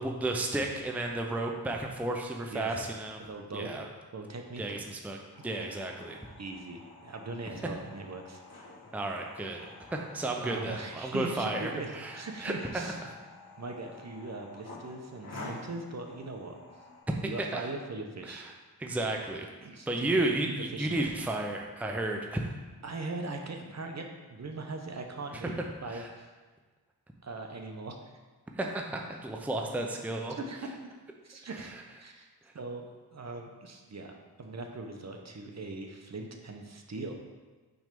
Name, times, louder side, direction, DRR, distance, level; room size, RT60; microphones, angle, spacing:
voice 1, 0.0-3.2 3.5-3.9 4.6-5.2 5.4-6.2 7.6-7.7 8.9-9.7 9.9-12.8 17.2-17.6 18.2-18.5 18.8-19.5 19.9-22.5 25.3-25.5 25.9-26.1 28.6-30.4, right 2 dB, 5° right, 2 dB, 0.6 m, -33 dB
voice 2, 2.4-2.7 3.2-4.6 5.4-5.5 6.4-8.4 10.4-13.0 13.6-16.6 17.2-18.4 19.6-20.1 20.7-21.1 22.8-24.1 24.3-25.5 25.8-26.3 27.2-28.1 30.5-30.7 31.2-31.7 32.0-32.3 32.5-37.1, right 3 dB, 45° right, 3 dB, 0.8 m, -40 dB
sound 1, 5.3-17.0, left 2 dB, 85° left, 1.7 m, -50 dB
6.1 x 3.3 x 5.2 m, 1.3 s
cardioid pair, 60°, 38 cm